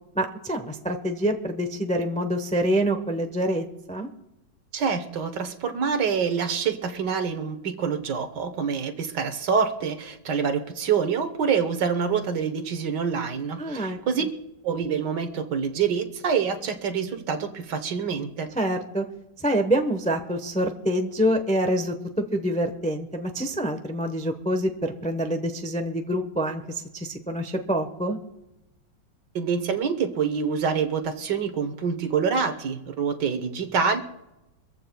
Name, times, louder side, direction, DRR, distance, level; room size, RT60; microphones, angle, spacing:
voice 1, 0.1-4.1 13.6-14.3 18.5-19.0 19.4-28.2, equal, 10° left, 5 dB, 0.5 m, -26 dB
voice 2, 4.7-14.2 14.6-18.5 29.3-34.0, right 6 dB, 65° right, 8 dB, 1.7 m, -26 dB
25.0 x 14.5 x 2.3 m, 0.93 s
omnidirectional pair, 2.1 m